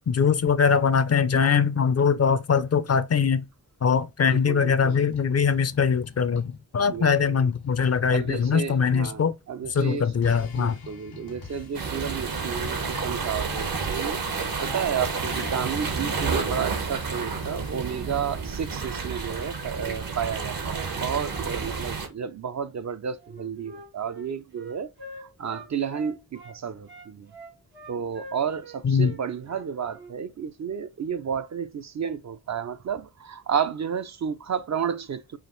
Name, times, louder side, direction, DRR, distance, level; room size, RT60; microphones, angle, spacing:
voice 1, 0.1-3.4 3.8-9.3 9.8-10.8 28.8-29.1, left 6 dB, 45° left, 0.5 m, -22 dB
voice 2, 4.2-5.1 6.9-7.1 8.1-10.2 10.6-14.2 14.6-24.9 25.2-27.3 27.9-35.4, right 7 dB, 50° right, 0.4 m, -32 dB
sound 1, 4.9-9.3 9.6-17.9, left 5 dB, 85° left, 1.5 m, -44 dB
sound 2, 11.7-22.1, right 5 dB, 65° right, 1.1 m, -30 dB
Wind instrument woodwind instrument, 23.2-26.6 26.9-30.1, right 1 dB, 85° right, 1.5 m, -44 dB
4.9 x 2.5 x 3.0 m
cardioid pair, 50°, 37 cm